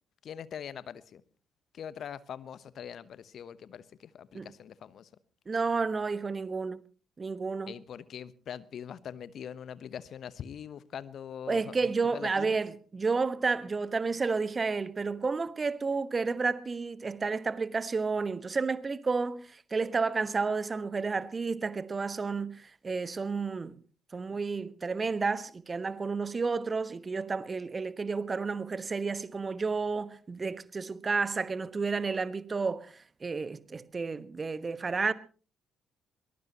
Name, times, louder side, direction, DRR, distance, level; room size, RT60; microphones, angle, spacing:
voice 1, 0.2-1.2 1.7-5.1 7.7-12.6, left 8 dB, 55° left, 0.9 m, -42 dB
voice 2, 5.5-6.8 7.2-7.7 11.5-23.8 24.1-35.1, right 4 dB, 30° right, 1.2 m, -31 dB
22.0 x 20.5 x 2.9 m
figure-of-eight pair, 45°, 0 cm